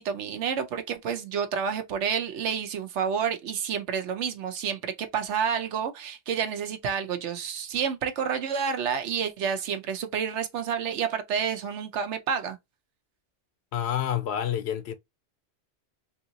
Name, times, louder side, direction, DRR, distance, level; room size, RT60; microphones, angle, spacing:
voice 1, 0.0-12.6, right 7 dB, 80° right, 1.0 m, -29 dB
voice 2, 13.7-14.9, left 10 dB, 70° left, 0.8 m, -28 dB
3.3 x 2.8 x 2.7 m
omnidirectional pair, 1.2 m